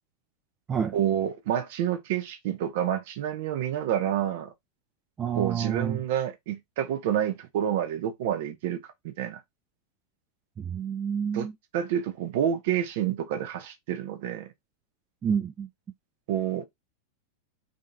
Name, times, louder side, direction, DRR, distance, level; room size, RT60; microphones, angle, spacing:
voice 1, 0.9-4.5 5.3-9.4 11.3-11.5 11.7-14.5 16.3-16.6, right 10 dB, 50° right, 0.6 m, -28 dB
voice 2, 5.2-6.0 10.6-11.5 15.2-15.7, right 7 dB, 25° right, 0.3 m, -29 dB
3.3 x 2.8 x 2.6 m
figure-of-eight pair, 90°, 0 cm